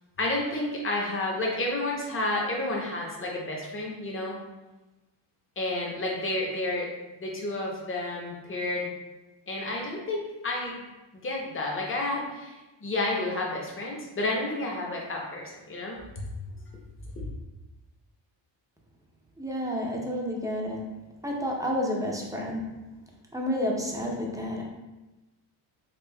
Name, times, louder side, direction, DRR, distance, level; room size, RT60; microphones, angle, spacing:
voice 1, 0.2-4.4 5.6-6.9 7.2-8.9 9.5-10.8 11.1-16.2 17.2-17.3, left 2 dB, 25° left, -2 dB, 0.8 m, -31 dB
voice 2, 19.4-20.9 21.2-22.7 23.3-24.6, left 1 dB, 5° right, -2 dB, 0.5 m, -30 dB
5.3 x 2.4 x 2.2 m, 1.1 s
cardioid pair, 120°, 46 cm